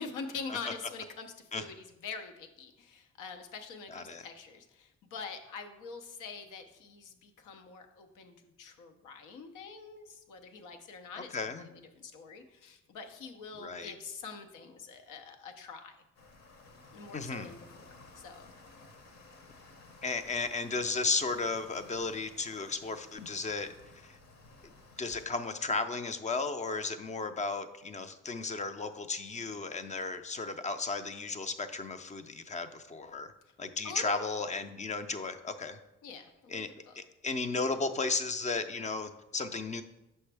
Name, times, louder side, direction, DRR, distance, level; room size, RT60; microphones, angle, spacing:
voice 1, 0.0-11.7 12.0-16.0 16.9-17.6 17.8-18.5 33.8-34.5 36.0-37.0, left 5 dB, 90° left, 6 dB, 0.8 m, -45 dB
voice 2, 3.9-4.3 11.3-11.7 13.6-13.9 17.1-17.5 20.0-23.7 23.9-24.2 25.0-33.3 33.6-35.8 36.5-36.7 37.0-39.8, left 4 dB, 25° left, 10 dB, 0.5 m, -34 dB
sound 1, 16.1-25.3, left 3 dB, 60° left, 1.0 m, -55 dB
5.8 x 5.4 x 3.4 m, 0.95 s
cardioid pair, 90°, 30 cm